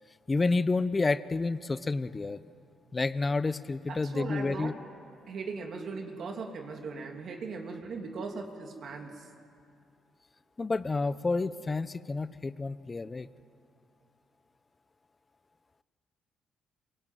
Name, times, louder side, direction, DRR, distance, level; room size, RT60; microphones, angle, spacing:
voice 1, 0.3-2.4 2.9-4.7 10.6-13.3, left 3 dB, 25° left, 15 dB, 0.8 m, -29 dB
voice 2, 3.9-4.8 5.3-9.3, right 4 dB, 60° right, 2 dB, 3.1 m, -39 dB
25.0 x 22.5 x 9.4 m, 2.4 s
cardioid pair, 90°, 0 cm